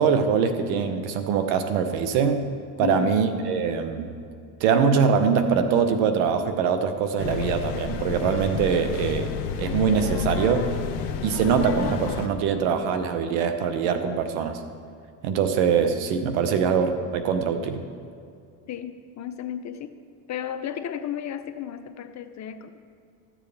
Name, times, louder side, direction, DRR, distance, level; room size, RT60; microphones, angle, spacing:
voice 1, 0.0-2.5 2.8-4.1 4.6-9.3 9.6-10.7 11.2-14.6 15.2-17.8, right 6 dB, 75° right, 8 dB, 1.0 m, -23 dB
voice 2, 2.8-3.2 18.7-20.0 20.3-22.8, left 10 dB, 35° left, 9 dB, 0.5 m, -33 dB
sound 1, 7.2-12.3, left 7 dB, 70° left, 1.0 m, -30 dB
13.5 x 7.5 x 3.4 m, 2.4 s
supercardioid pair, 90°, 49 cm